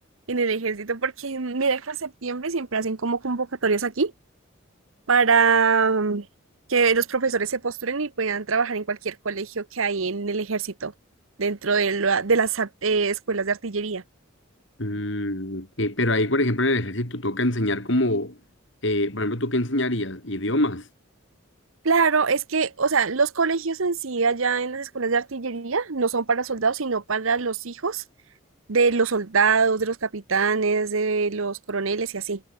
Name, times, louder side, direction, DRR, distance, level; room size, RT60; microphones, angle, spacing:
voice 1, 0.3-4.1 5.1-6.3 6.7-10.9 11.4-14.0 21.8-28.0 28.7-32.4, right 4 dB, 75° right, 1.0 m, -24 dB
voice 2, 14.8-18.4 18.8-20.9, left 1 dB, 60° left, 4.3 m, -24 dB
head